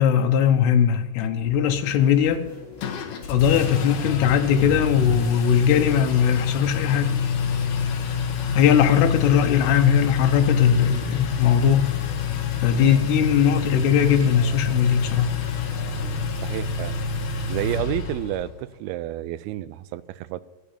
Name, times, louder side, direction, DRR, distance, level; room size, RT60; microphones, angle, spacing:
voice 1, 0.0-2.4 3.3-7.2 8.5-11.9 12.6-15.3, left 8 dB, 90° left, 3.0 m, -19 dB
sound 1, 1.4-16.2, left 3 dB, 55° left, 5.8 m, -44 dB
Engine, 2.8-18.5, left 6 dB, 70° left, 3.0 m, -27 dB
voice 2, 16.3-17.0 17.5-20.4, right 14 dB, 80° right, 2.3 m, -30 dB
14.0 x 8.8 x 7.1 m
omnidirectional pair, 4.6 m